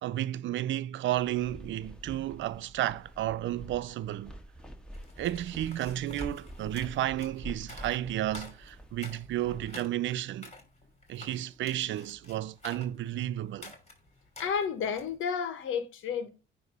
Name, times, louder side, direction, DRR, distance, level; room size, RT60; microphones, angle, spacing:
voice 1, 0.0-4.3 5.2-10.5 11.1-13.7, right 13 dB, 75° right, 0.5 m, -32 dB
sound 1, 1.2-9.7, equal, 5° left, 1.9 m, -47 dB
sound 2, 4.9-15.2, left 2 dB, 35° left, 3.0 m, -50 dB
voice 2, 14.4-16.3, left 6 dB, 80° left, 1.4 m, -31 dB
9.4 x 3.2 x 5.3 m
cardioid pair, 90°, 20 cm